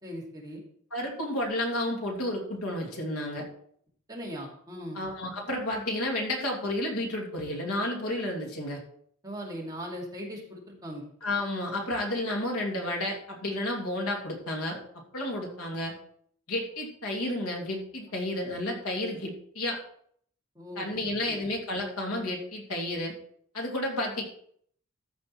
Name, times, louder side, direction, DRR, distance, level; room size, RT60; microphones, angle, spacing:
voice 1, 0.0-0.6 4.1-5.0 9.2-11.1 20.6-20.8 21.3-21.4, equal, 15° right, -3 dB, 2.6 m, -39 dB
voice 2, 0.9-3.4 4.9-8.8 11.2-14.8 15.1-15.9 16.5-19.8 20.7-23.1 23.5-24.2, left 1 dB, 80° left, -1 dB, 2.9 m, -31 dB
13.5 x 5.4 x 4.6 m, 0.63 s
head